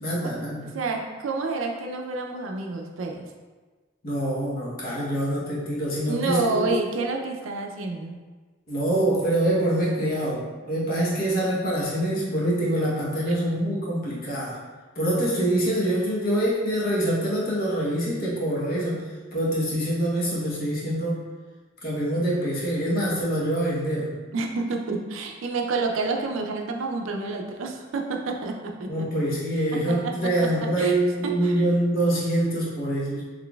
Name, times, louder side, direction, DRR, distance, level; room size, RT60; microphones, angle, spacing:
voice 1, 0.0-0.6 4.0-6.7 8.7-14.6 15.0-21.2 21.8-24.1 28.9-33.3, right 1 dB, 45° left, -5 dB, 0.9 m, -25 dB
voice 2, 0.7-3.3 6.1-8.2 24.3-28.9 29.7-31.0 31.2-31.6, right 3 dB, 80° right, 3 dB, 0.4 m, -29 dB
3.9 x 3.1 x 2.2 m, 1.3 s
head